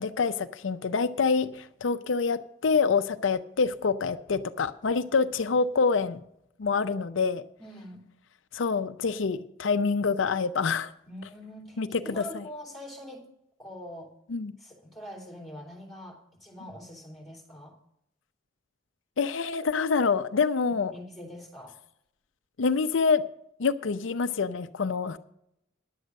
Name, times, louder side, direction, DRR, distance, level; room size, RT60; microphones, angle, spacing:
voice 1, 0.0-6.2 6.6-7.4 8.5-10.9 11.8-12.4 14.3-14.5 19.2-20.9 22.6-23.2 23.6-25.2, left 5 dB, 85° left, 0.6 m, -26 dB
voice 2, 7.6-8.0 11.1-13.3 13.6-14.1 14.6-17.8 20.6-21.8, equal, ahead, 3.2 m, -44 dB
11.0 x 8.1 x 6.3 m
head